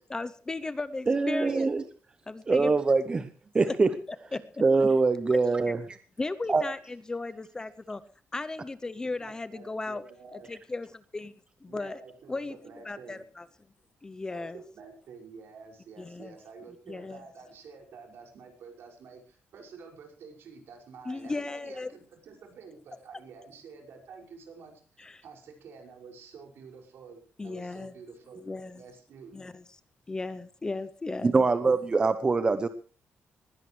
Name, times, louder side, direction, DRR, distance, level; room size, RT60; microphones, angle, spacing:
voice 1, 0.1-1.7 2.3-2.7 3.6-3.7 4.3-4.4 5.3-5.4 6.2-8.0 8.3-10.0 10.3-11.3 11.6-12.0 12.3-12.6 12.9-13.5 14.0-14.6 16.0-16.3 16.9-17.2 21.1-21.9 25.0-25.2 27.4-27.9 28.4-28.8 29.3-29.6 30.1-31.3, left 3 dB, 15° left, 14 dB, 0.7 m, -36 dB
voice 2, 1.1-1.8 2.5-3.3 3.5-3.9 4.6-5.8 6.5-6.6 31.2-32.7, right 3 dB, 20° right, 11 dB, 0.8 m, -23 dB
voice 3, 9.0-10.5 11.7-13.2 14.3-29.3, right 5 dB, 65° right, 3 dB, 5.8 m, -49 dB
20.5 x 16.5 x 3.2 m, 0.39 s
cardioid pair, 165°, 4 cm